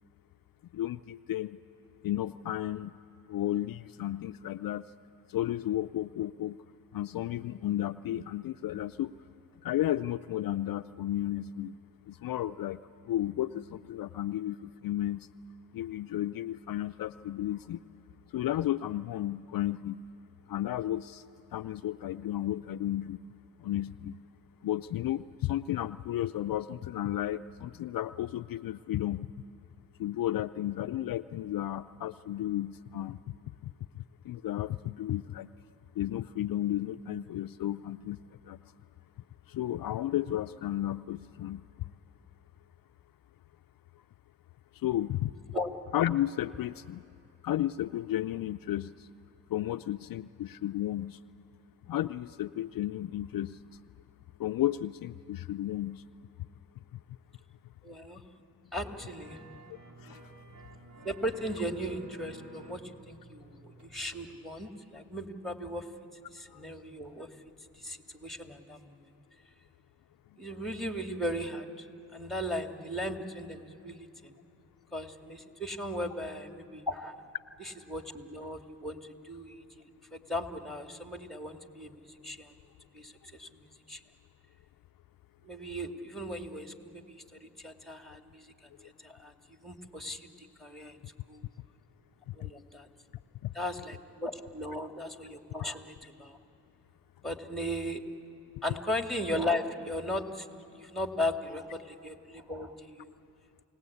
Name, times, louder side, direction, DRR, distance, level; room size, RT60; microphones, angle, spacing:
voice 1, 0.7-1.6 2.0-3.0 3.3-4.8 5.3-6.6 6.9-9.1 9.6-11.7 12.1-12.8 13.1-15.3 15.7-17.8 18.3-20.0 20.5-21.2 21.5-23.2 23.6-24.1 24.6-29.3 30.0-33.2 33.6-35.5 36.0-38.2 38.5-38.6 39.5-41.7 44.8-45.3 45.9-47.0 47.4-49.1 49.5-51.2 51.9-53.6 54.4-56.0 60.0-60.2 66.5-66.6 93.4-93.5, left 13 dB, 65° left, 11 dB, 0.5 m, -33 dB
voice 2, 57.8-58.2 58.7-59.4 61.0-65.9 66.3-67.3 67.8-69.1 70.4-71.9 72.1-74.4 74.9-77.1 77.6-79.6 80.1-82.5 82.9-84.0 85.4-88.5 89.0-91.0 91.3-91.4 92.3-92.9 93.5-96.4 97.2-98.0 98.6-100.5 100.8-103.1, left 1 dB, ahead, 5 dB, 2.3 m, -37 dB
sound 1, 58.7-64.3 64.6-64.7, right 2 dB, 50° right, 3.0 m, -52 dB
29.0 x 18.5 x 8.5 m, 2.8 s
supercardioid pair, 50°, 37 cm